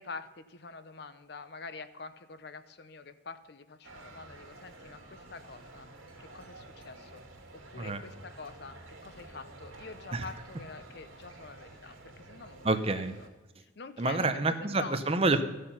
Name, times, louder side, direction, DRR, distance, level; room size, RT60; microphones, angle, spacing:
voice 1, 0.0-5.9 6.2-7.2 7.7-12.7 13.8-15.0, left 4 dB, 55° left, 11 dB, 0.7 m, -46 dB
sound 1, 3.8-13.3, right 2 dB, 90° right, 2.1 m, -51 dB
voice 2, 12.6-13.1 14.0-15.4, right 2 dB, 30° right, 9 dB, 0.7 m, -28 dB
14.5 x 6.6 x 5.7 m, 1.1 s
head